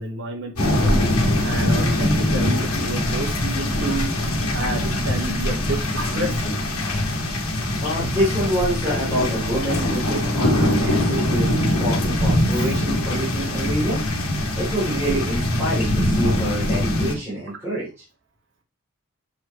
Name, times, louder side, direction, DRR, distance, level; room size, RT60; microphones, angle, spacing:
voice 1, 0.0-4.1 4.5-6.6, right 2 dB, 55° right, 3 dB, 1.3 m, -30 dB
sound 1, 0.6-17.1, left 1 dB, 80° left, 1.9 m, -22 dB
voice 2, 7.8-11.5 11.8-14.0 14.6-17.9, right 1 dB, 10° right, -10 dB, 2.9 m, -26 dB
7.2 x 4.8 x 3.0 m, 0.30 s
head